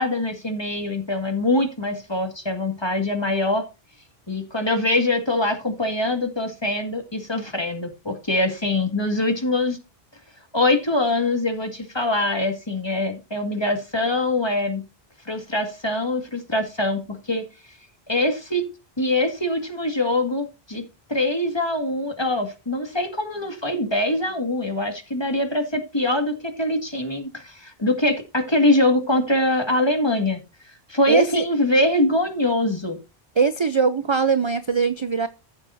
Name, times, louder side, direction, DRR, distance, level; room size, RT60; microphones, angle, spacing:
voice 1, 0.0-3.6 4.3-9.8 10.5-14.8 15.3-17.4 18.1-18.7 19.0-20.8 21.1-30.4 30.9-33.0, left 1 dB, 25° left, 2.1 m, -23 dB
voice 2, 31.1-31.4 33.4-35.3, right 5 dB, 35° right, 0.5 m, -21 dB
15.0 x 7.1 x 2.7 m
omnidirectional pair, 1.0 m